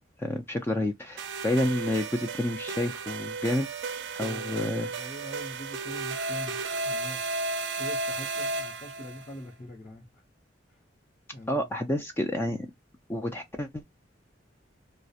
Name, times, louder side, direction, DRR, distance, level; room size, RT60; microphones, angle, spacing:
voice 1, 0.2-3.7 4.1-4.9 11.5-12.7 13.1-13.8, left 1 dB, 15° left, 0.3 m, -29 dB
sound 1, 1.2-9.3, right 3 dB, 75° right, 0.4 m, -34 dB
voice 2, 4.2-7.2 7.8-10.2 10.7-10.8 11.3-11.7, equal, 40° left, 0.7 m, -43 dB
2.3 x 2.0 x 2.6 m
head